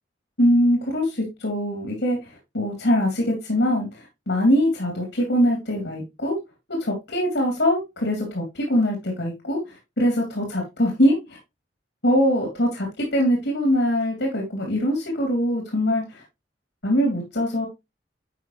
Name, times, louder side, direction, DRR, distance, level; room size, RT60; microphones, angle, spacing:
voice 1, 0.4-6.4 6.7-11.4 12.0-16.2 16.8-17.7, equal, 90° left, 1 dB, 3.0 m, -23 dB
11.0 x 5.1 x 3.1 m, 0.23 s
head